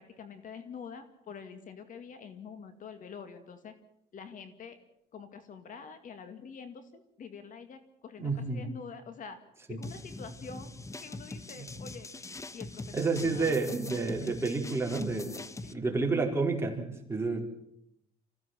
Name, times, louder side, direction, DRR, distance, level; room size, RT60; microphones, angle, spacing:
voice 1, 0.0-3.7 4.1-4.8 5.1-9.4 9.7-10.7 11.0-12.1 12.5-13.6 15.6-15.8, left 6 dB, 50° left, 9 dB, 2.2 m, -46 dB
voice 2, 8.2-8.6 9.7-9.8 11.6-11.7 12.9-15.4 15.7-17.4, right 3 dB, 15° right, 1 dB, 4.7 m, -30 dB
sound 1, 9.8-15.7, left 2 dB, 20° left, 1.1 m, -43 dB
26.0 x 16.0 x 7.6 m, 0.78 s
cardioid pair, 110°, 17 cm